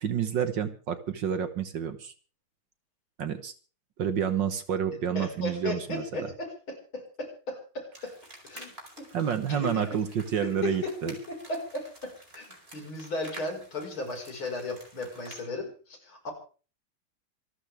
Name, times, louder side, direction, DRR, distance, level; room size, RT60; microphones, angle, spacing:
voice 1, 0.0-2.1 3.2-3.5 4.0-6.3 9.1-11.1, right 8 dB, 60° right, 10 dB, 1.8 m, -29 dB
voice 2, 5.1-6.5 6.9-8.1 8.4-8.7 9.0-9.1 9.5-10.0 10.4-10.8 11.0-12.4 12.7-16.3, left 2 dB, 70° left, 3 dB, 5.8 m, -36 dB
sound 1, 7.9-15.4, right 1 dB, 25° right, 5.0 m, -50 dB
26.5 x 13.0 x 3.5 m, 0.38 s
omnidirectional pair, 2.3 m